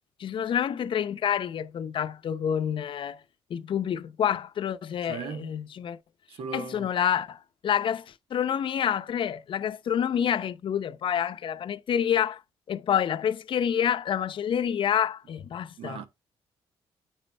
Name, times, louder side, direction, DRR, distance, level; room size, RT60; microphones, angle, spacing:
voice 1, 0.2-3.2 3.5-6.0 6.5-7.4 7.6-8.0 8.3-12.4 12.7-16.0, left 9 dB, 55° left, 0.7 m, -28 dB
voice 2, 5.0-5.5 6.3-7.0 15.8-16.1, right 6 dB, 70° right, 1.4 m, -38 dB
9.1 x 3.1 x 5.4 m
cardioid pair, 85°, 10 cm